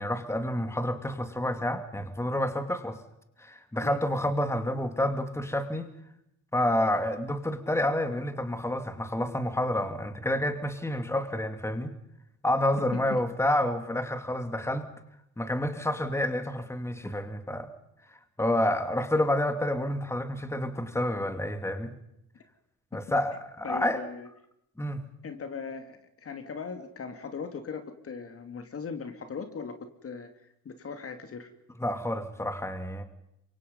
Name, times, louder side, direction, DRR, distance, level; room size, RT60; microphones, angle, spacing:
voice 1, 0.0-3.0 3.4-5.9 6.5-11.9 12.4-14.9 15.4-17.7 18.4-21.9 22.9-24.0 24.8-25.1 31.8-33.0, left 1 dB, 10° left, 8 dB, 2.6 m, -29 dB
voice 2, 23.6-24.3 25.2-29.8 30.0-31.5, left 5 dB, 50° left, 7 dB, 2.6 m, -39 dB
27.5 x 24.0 x 5.5 m, 0.78 s
cardioid pair, 90°, 30 cm